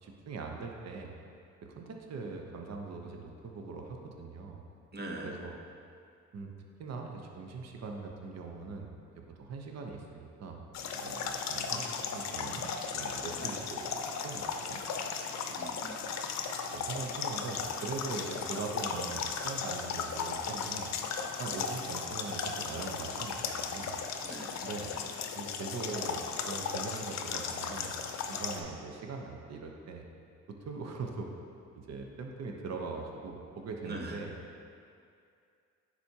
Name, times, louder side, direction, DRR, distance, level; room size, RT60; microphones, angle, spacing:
voice 1, 0.0-1.1 1.6-4.6 5.2-5.5 6.3-6.5 6.8-8.9 9.4-10.6 10.9-14.8 15.8-15.9 16.7-20.9 21.4-24.0 24.6-24.9 25.3-27.9 28.3-30.0 30.5-31.3 31.8-34.3, right 4 dB, 55° right, 2 dB, 0.8 m, -41 dB
voice 2, 4.9-5.4 13.4-13.5 15.5-16.0 24.2-24.6 33.8-34.2, right 1 dB, 35° right, 0 dB, 1.0 m, -42 dB
sound 1, 10.7-28.6, left 6 dB, 60° left, 0.6 m, -36 dB
10.0 x 4.2 x 2.9 m, 2.4 s
cardioid pair, 75°, 31 cm